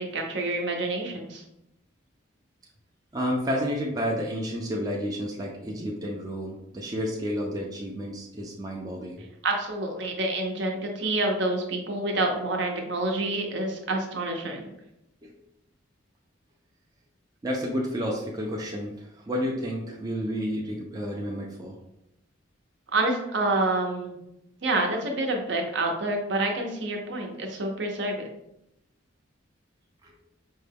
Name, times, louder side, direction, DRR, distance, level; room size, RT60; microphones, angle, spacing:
voice 1, 0.0-1.4 9.4-14.7 22.9-24.2 24.6-28.3, right 2 dB, 60° right, 2 dB, 0.7 m, -28 dB
voice 2, 3.1-9.2 15.2-15.4 17.4-21.8 30.0-30.1, equal, 20° right, -2 dB, 0.4 m, -31 dB
5.3 x 2.2 x 3.4 m, 0.85 s
head